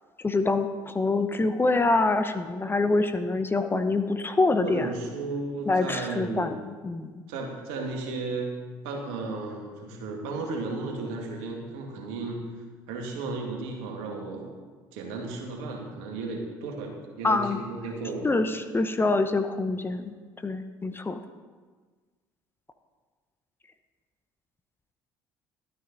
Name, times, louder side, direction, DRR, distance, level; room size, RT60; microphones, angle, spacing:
voice 1, 0.2-4.9 5.7-7.2 17.2-17.6 18.2-20.1 20.4-21.2, left 3 dB, 20° left, 8 dB, 0.8 m, -25 dB
voice 2, 4.6-6.6 7.3-8.5 8.8-12.4 12.9-14.6 14.9-18.3, right 3 dB, 70° right, 1 dB, 2.0 m, -34 dB
12.0 x 9.3 x 4.1 m, 1.4 s
hypercardioid pair, 60°, 11 cm